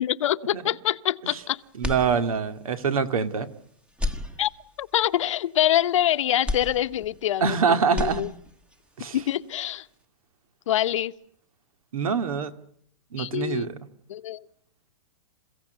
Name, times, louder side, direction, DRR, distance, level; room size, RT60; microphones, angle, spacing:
voice 1, 0.0-1.6 4.4-4.5 4.8-7.6 7.9-8.3 9.1-9.9 10.7-11.1 13.2-13.7 14.1-14.4, left 12 dB, 60° left, 13 dB, 0.9 m, -25 dB
sound 1, 1.8-2.7 3.1-3.2 3.9-4.9 6.4-7.5 7.8-8.8, left 2 dB, 5° right, 1.1 m, -33 dB
voice 2, 1.8-3.5 7.4-8.2 9.0-9.2 11.9-12.5 13.1-13.8, right 6 dB, 80° right, 11 dB, 2.3 m, -25 dB
28.5 x 16.5 x 9.3 m, 0.65 s
hypercardioid pair, 160°, 18 cm